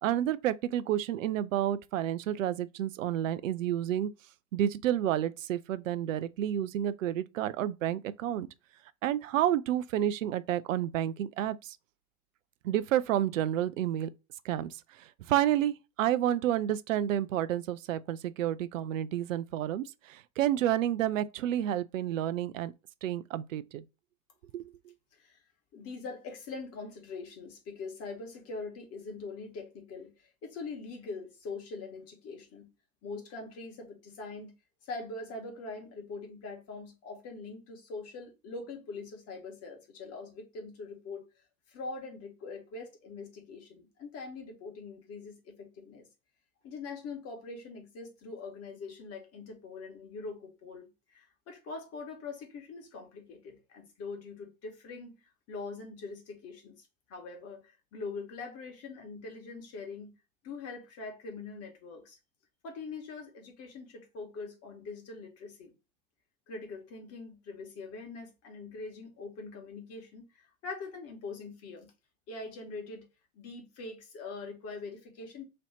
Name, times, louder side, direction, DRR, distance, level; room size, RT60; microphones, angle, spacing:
voice 1, 0.0-4.1 4.5-8.5 9.0-11.8 12.6-14.1 14.4-22.7 23.0-23.8 24.5-24.7, right 11 dB, 65° right, 0.5 m, -30 dB
voice 2, 25.7-32.7 33.0-34.5 34.8-41.3 41.7-46.1 46.6-50.8 51.1-55.2 55.5-60.1 60.4-62.2 62.6-65.7 66.5-71.9 72.3-73.1 73.3-75.4, left 3 dB, 35° left, 1.4 m, -43 dB
3.2 x 2.7 x 4.1 m
figure-of-eight pair, 85°, 42 cm